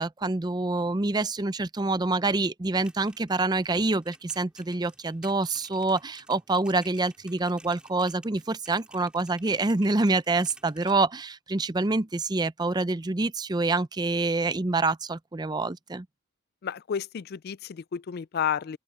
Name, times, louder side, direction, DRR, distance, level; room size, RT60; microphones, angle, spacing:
voice 1, 0.0-16.1, right 3 dB, 20° right, 0.5 m, -26 dB
sound 1, 2.7-11.0, right 1 dB, 5° right, 2.2 m, -54 dB
voice 2, 16.6-18.8, left 8 dB, 50° left, 0.3 m, -31 dB
open air
head